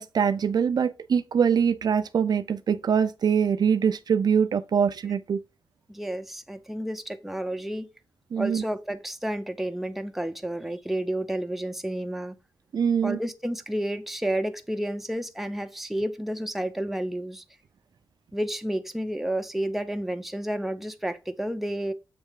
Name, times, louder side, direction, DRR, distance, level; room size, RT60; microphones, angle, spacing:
voice 1, 0.0-5.4 8.3-8.6 12.7-13.2, right 7 dB, 60° right, 0.4 m, -23 dB
voice 2, 5.9-7.9 8.4-12.4 13.0-17.4 18.3-21.9, right 1 dB, 5° right, 0.7 m, -31 dB
7.4 x 3.2 x 4.8 m
wide cardioid pair, 105°, 8 cm